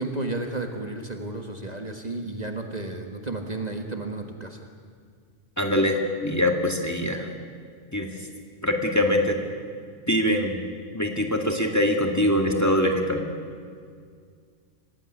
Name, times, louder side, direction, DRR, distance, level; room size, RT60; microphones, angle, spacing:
voice 1, 0.0-4.7, right 2 dB, 35° right, 3 dB, 1.7 m, -32 dB
voice 2, 5.6-7.3 7.9-8.1 8.6-9.4 10.1-10.6 10.9-13.2, left 1 dB, 15° left, 2 dB, 2.2 m, -23 dB
25.5 x 15.5 x 9.9 m, 2.1 s
omnidirectional pair, 1.2 m